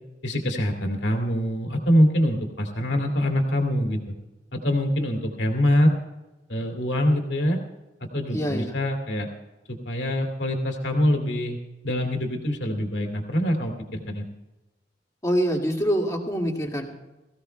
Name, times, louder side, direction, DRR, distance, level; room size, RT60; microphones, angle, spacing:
voice 1, 0.2-4.2 4.5-5.9 6.5-7.6 8.1-9.3 9.7-11.6 11.8-14.2, equal, 70° left, 2 dB, 2.5 m, -24 dB
voice 2, 8.3-8.8 15.2-16.9, equal, 15° left, 0 dB, 2.1 m, -25 dB
22.0 x 15.5 x 2.3 m, 1.1 s
head